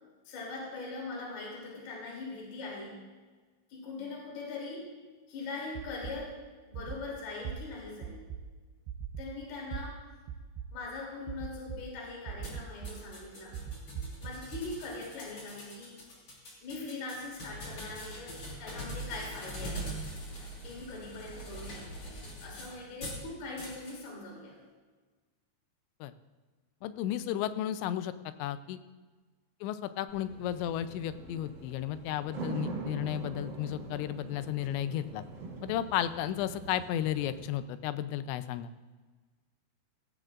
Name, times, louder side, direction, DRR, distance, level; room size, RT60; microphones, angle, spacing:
voice 1, 0.3-3.0 3.7-4.9 5.3-8.3 9.2-10.1 10.7-13.6 14.2-16.0 16.6-20.0 20.6-24.6 27.3-27.5, left 3 dB, 65° left, -2 dB, 4.7 m, -41 dB
sound 1, 5.8-6.1 6.7-7.0 7.4-7.6 8.0-8.4 8.9-9.2 9.7-9.8 10.3-10.7 11.3-11.8 12.3-12.9 13.5-14.6, right 9 dB, 80° right, 2.3 m, -38 dB
sound 2, 12.4-23.2 23.6-24.0, equal, 35° left, 3.1 m, -43 dB
voice 2, 26.8-28.1 28.4-28.8 29.6-35.2 35.6-38.7, left 11 dB, 90° left, 12 dB, 3.0 m, -33 dB
sound 3, 30.1-37.5, right 4 dB, 60° right, 4.6 m, -43 dB
17.0 x 15.5 x 2.5 m, 1.4 s
omnidirectional pair, 5.1 m